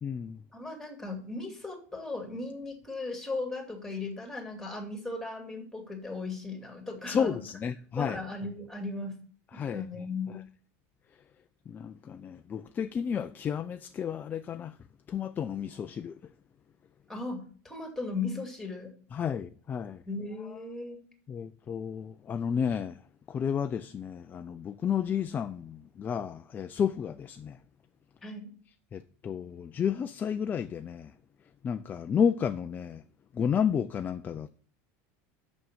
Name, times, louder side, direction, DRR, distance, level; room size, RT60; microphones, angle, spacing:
voice 1, 0.0-0.4 7.1-8.2 9.5-9.8 11.7-14.8 15.1-16.2 19.1-20.0 21.3-23.0 23.3-27.6 28.9-31.1 31.6-33.0 33.3-34.5, left 7 dB, 25° left, 0.4 m, -31 dB
voice 2, 0.5-7.4 8.0-9.2 9.5-10.4 17.1-18.9 20.1-21.0 28.2-28.5, left 3 dB, 5° left, 2.5 m, -37 dB
6.5 x 6.3 x 7.1 m
supercardioid pair, 135°, 8 cm